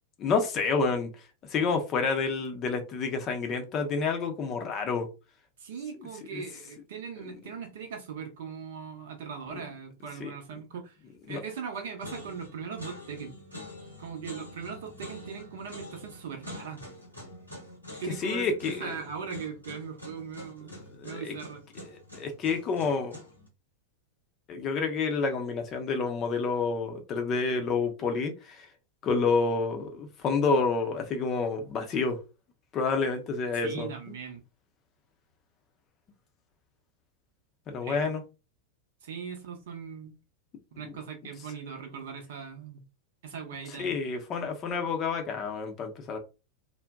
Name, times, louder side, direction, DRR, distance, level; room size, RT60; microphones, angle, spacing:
voice 1, 0.2-1.1 1.5-5.1 6.3-6.4 10.2-10.3 11.3-11.4 18.2-18.9 21.0-21.3 21.9-23.2 24.5-28.7 29.0-32.2 32.7-33.9 37.7-38.2 43.8-46.2, left 4 dB, 30° left, 0.5 m, -29 dB
voice 2, 5.6-11.0 11.3-13.4 14.0-16.8 18.0-20.8 21.0-21.6 33.6-34.4 37.8-38.1 39.0-40.2 40.8-42.8 43.2-44.0, right 6 dB, 55° right, 0.6 m, -39 dB
sound 1, 11.3-11.7 12.0-23.5, left 1 dB, 90° right, 0.9 m, -46 dB
2.6 x 2.1 x 2.2 m
figure-of-eight pair, 90°, 0 cm